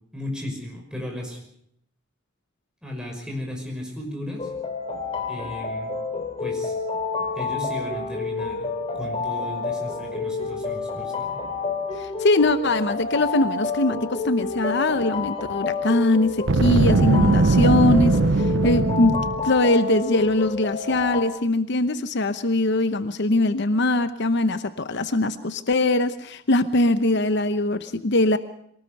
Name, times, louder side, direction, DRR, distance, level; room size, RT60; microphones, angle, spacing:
voice 1, 0.1-1.4 2.8-4.5 5.3-5.9 6.4-6.7 7.4-8.7 8.9-11.4, left 1 dB, 5° right, 1 dB, 5.8 m, -35 dB
sound 1, 4.4-21.2, left 4 dB, 30° left, 3.5 m, -29 dB
voice 2, 12.0-28.4, left 2 dB, 60° left, 11 dB, 0.9 m, -22 dB
Boom, 16.4-19.5, right 3 dB, 65° right, 0.7 m, -19 dB
23.0 x 18.5 x 6.7 m, 0.70 s
head